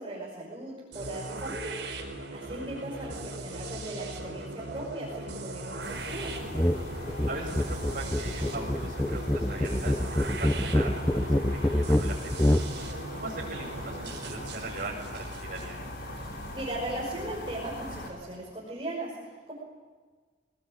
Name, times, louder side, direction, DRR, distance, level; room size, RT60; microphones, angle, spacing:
voice 1, 0.0-1.8 2.3-6.3 16.2-19.5, right 1 dB, 30° right, -4 dB, 5.7 m, -38 dB
sound 1, 0.9-16.7, right 2 dB, 80° right, 5.0 m, -39 dB
sound 2, 5.8-18.1, left 1 dB, 65° left, 4.7 m, -41 dB
sound 3, 6.5-6.8 7.1-12.7, left 1 dB, 10° left, 0.7 m, -26 dB
voice 2, 7.3-12.3 13.1-15.8, right 2 dB, 50° right, -7 dB, 5.4 m, -40 dB
22.5 x 19.5 x 8.9 m, 1.5 s
head